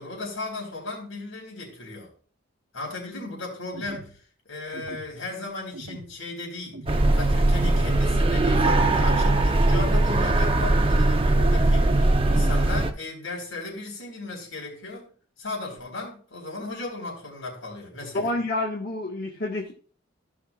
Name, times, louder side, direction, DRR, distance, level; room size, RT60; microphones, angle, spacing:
voice 1, 0.0-2.1 2.7-4.2 4.5-6.8 7.1-15.1 15.4-18.3, left 3 dB, 85° left, 4.5 m, -36 dB
sound 1, 3.7-4.1 4.7-5.1 5.7-6.1 6.7-7.1 7.7-8.1 8.7-9.1 9.7-10.1 10.7-11.1 11.7-12.1, right 2 dB, 65° right, 0.9 m, -41 dB
sound 2, 6.9-12.9, right 2 dB, 25° right, 0.8 m, -20 dB
voice 2, 18.1-19.7, left 2 dB, 50° left, 1.5 m, -28 dB
16.0 x 6.1 x 2.4 m
head